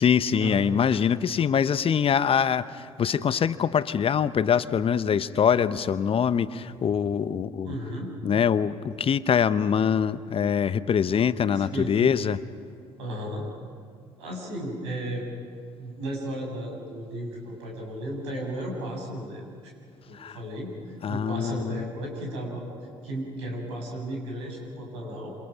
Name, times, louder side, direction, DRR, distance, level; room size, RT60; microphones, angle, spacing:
voice 1, 0.0-7.7 8.2-12.4 20.1-20.4 21.0-21.9, left 7 dB, 40° left, 15 dB, 0.9 m, -24 dB
voice 2, 7.6-8.1 11.5-12.1 13.0-13.5 14.2-15.2 15.8-19.7 20.1-22.6 23.0-25.3, right 1 dB, 80° right, 0 dB, 6.8 m, -34 dB
29.5 x 28.0 x 6.0 m, 2.2 s
figure-of-eight pair, 50°, 14 cm